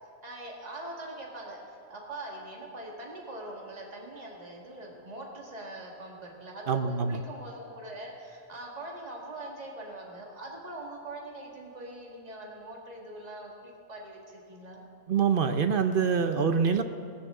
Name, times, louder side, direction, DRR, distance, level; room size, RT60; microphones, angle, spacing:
voice 1, 0.2-14.8, right 1 dB, 30° right, -2 dB, 1.9 m, -42 dB
voice 2, 6.7-7.2 15.1-16.8, right 6 dB, 55° right, 8 dB, 0.7 m, -25 dB
18.5 x 13.5 x 3.7 m, 2.5 s
omnidirectional pair, 1.4 m